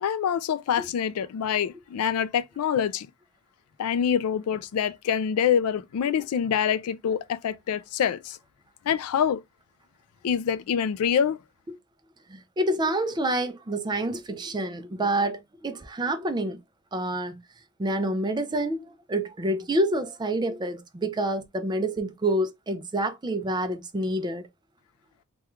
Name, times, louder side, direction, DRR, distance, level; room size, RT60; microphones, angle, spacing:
voice 1, 0.0-3.1 3.8-8.4 8.9-9.4 10.2-11.4, left 8 dB, 75° left, 0.3 m, -25 dB
voice 2, 12.3-16.6 16.9-17.4 17.8-24.5, right 1 dB, 20° right, 0.4 m, -28 dB
3.5 x 2.3 x 3.0 m
head